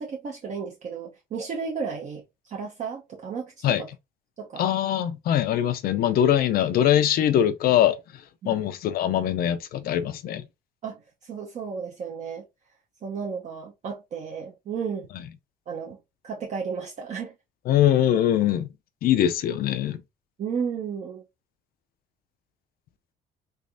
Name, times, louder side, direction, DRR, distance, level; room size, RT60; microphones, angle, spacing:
voice 1, 0.0-3.9 4.4-4.6 8.4-8.6 10.8-12.4 13.0-15.1 15.7-16.0 16.2-17.3 20.4-21.2, right 6 dB, 45° right, 0.7 m, -33 dB
voice 2, 4.6-8.0 8.4-10.4 17.7-18.7 19.0-20.0, left 11 dB, 60° left, 0.5 m, -22 dB
3.4 x 3.2 x 2.5 m
cardioid pair, 110°, 17 cm